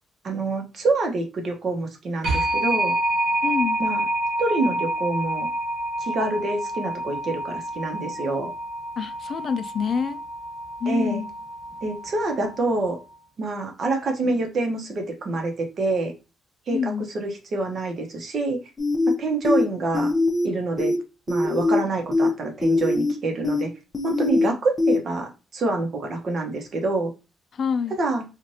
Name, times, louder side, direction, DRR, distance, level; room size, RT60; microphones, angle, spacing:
voice 1, 0.2-2.9 3.8-4.0 4.4-5.5 6.0-8.5 10.9-11.2 11.8-13.0 13.4-16.1 16.7-18.6 19.1-20.1 20.4-20.9 21.3-23.7 24.0-27.1 28.0-28.2, right 2 dB, 55° right, 0.9 m, -26 dB
sound 1, 2.2-12.9, right 1 dB, 80° right, 1.1 m, -28 dB
voice 2, 3.4-3.8 9.0-10.2 10.8-11.3 16.7-17.1 27.6-28.0, left 6 dB, 50° left, 0.4 m, -26 dB
sound 2, 18.8-19.1 19.4-19.6 19.9-20.5 20.8-21.0 21.3-21.8 22.1-22.3 22.6-23.1 23.4-23.6 23.9-24.5 24.8-25.0, left 2 dB, 20° left, 0.8 m, -21 dB
3.1 x 2.4 x 2.7 m
cardioid pair, 90°, 0 cm